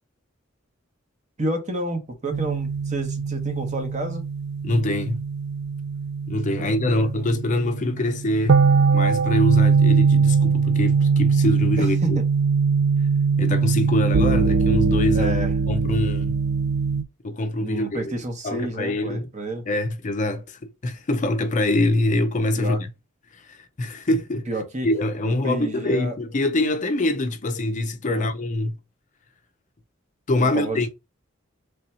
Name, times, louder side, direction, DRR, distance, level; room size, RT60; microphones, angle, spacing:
voice 1, 1.4-4.3 6.6-7.1 11.8-12.2 15.1-15.5 17.6-19.7 22.6-22.8 24.5-24.9 25.2-26.1 28.1-28.3 30.4-30.9, right 1 dB, 35° right, 0.9 m, -30 dB
sound 1, 2.3-17.0, right 5 dB, 55° right, 0.4 m, -21 dB
voice 2, 4.6-5.2 6.3-8.6 8.9-12.2 13.4-15.4 15.7-16.3 17.2-18.1 18.4-19.3 19.7-22.9 23.5-24.5 24.8-28.8 30.3-30.9, left 1 dB, 40° left, 0.5 m, -24 dB
3.4 x 2.7 x 4.2 m
head